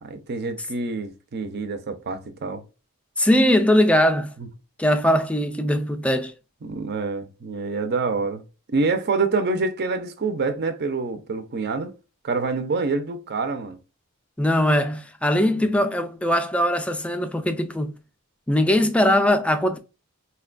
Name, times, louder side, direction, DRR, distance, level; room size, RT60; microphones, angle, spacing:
voice 1, 0.0-2.6 4.4-4.5 6.6-8.4 8.7-11.9 12.2-13.8, right 3 dB, 50° right, 0.6 m, -26 dB
voice 2, 3.2-4.3 4.8-6.3 14.4-17.9 18.5-19.8, left 1 dB, 5° left, 0.4 m, -20 dB
4.1 x 2.2 x 2.4 m
head